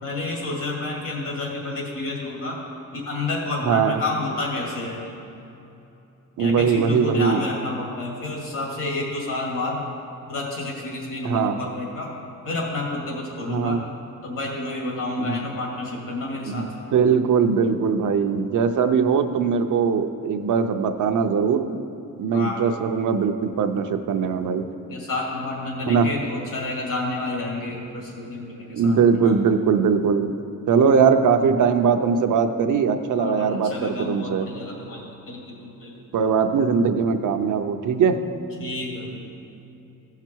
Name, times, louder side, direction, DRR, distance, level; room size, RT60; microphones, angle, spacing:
voice 1, 0.0-2.6 2.9-5.1 6.4-9.8 10.3-12.1 12.4-13.8 14.2-16.7 22.3-22.6 24.9-29.3 33.2-35.9 38.6-39.3, left 2 dB, 75° left, -2 dB, 2.5 m, -30 dB
voice 2, 3.6-4.0 6.4-7.4 11.2-11.6 13.5-13.8 15.2-15.4 16.5-21.8 22.2-24.6 25.9-26.1 28.7-30.4 30.7-34.5 36.1-38.2, right 6 dB, 65° right, 7 dB, 0.6 m, -21 dB
15.5 x 5.8 x 4.5 m, 2.8 s
wide cardioid pair, 180°, 33 cm